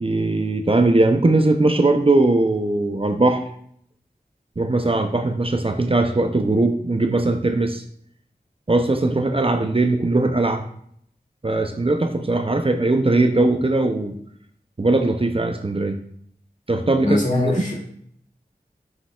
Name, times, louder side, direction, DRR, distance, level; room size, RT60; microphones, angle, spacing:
voice 1, 0.0-3.4 4.6-7.8 8.7-10.6 11.4-14.1 14.8-16.0 16.7-17.5, right 2 dB, 35° right, 6 dB, 0.5 m, -20 dB
voice 2, 17.0-17.8, left 2 dB, 50° left, -3 dB, 2.2 m, -22 dB
7.2 x 6.7 x 2.3 m, 0.66 s
wide cardioid pair, 50°, 17 cm